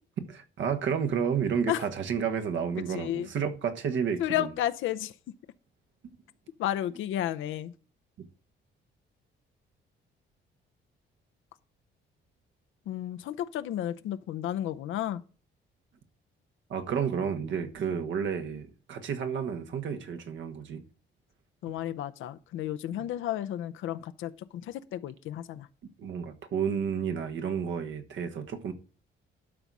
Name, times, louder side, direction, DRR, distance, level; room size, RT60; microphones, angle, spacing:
voice 1, 0.3-4.5 16.7-20.8 22.9-23.0 26.0-28.7, right 7 dB, 70° right, 1.3 m, -31 dB
voice 2, 2.9-3.3 4.2-5.1 6.6-7.7 12.9-15.2 21.6-25.7, left 12 dB, 80° left, 0.7 m, -32 dB
12.0 x 4.1 x 6.1 m
cardioid pair, 90°, 20 cm